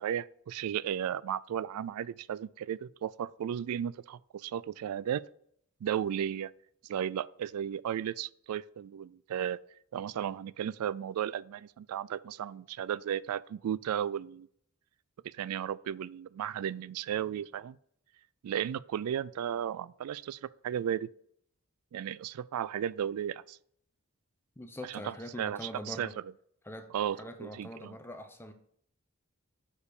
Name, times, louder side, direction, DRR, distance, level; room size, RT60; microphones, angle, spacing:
voice 1, 0.0-5.2 5.8-6.5 6.8-9.6 9.9-14.5 15.2-17.8 18.4-21.1 21.9-23.6 24.9-26.1 26.9-27.9, right 9 dB, 80° right, 0.3 m, -34 dB
voice 2, 24.6-26.1 26.6-28.5, equal, 10° left, 0.8 m, -43 dB
6.7 x 4.9 x 6.9 m
head